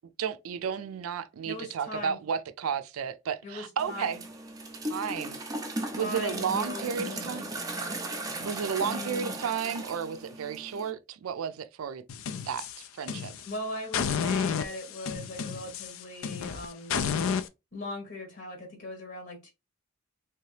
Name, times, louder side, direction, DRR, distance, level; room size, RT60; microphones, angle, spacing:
voice 1, 0.2-4.2 4.9-5.4 5.9-7.4 8.4-12.0 12.4-13.3, right 7 dB, 90° right, 0.4 m, -32 dB
voice 2, 1.5-2.2 3.4-4.2 5.9-7.7 8.8-9.3 13.4-17.0 17.7-19.5, left 2 dB, 60° left, 1.1 m, -39 dB
sound 1, 3.8-10.9, right 2 dB, 15° right, 0.5 m, -37 dB
sound 2, 12.1-13.5 13.9-17.5, left 6 dB, 80° left, 0.4 m, -31 dB
3.4 x 2.8 x 3.1 m
head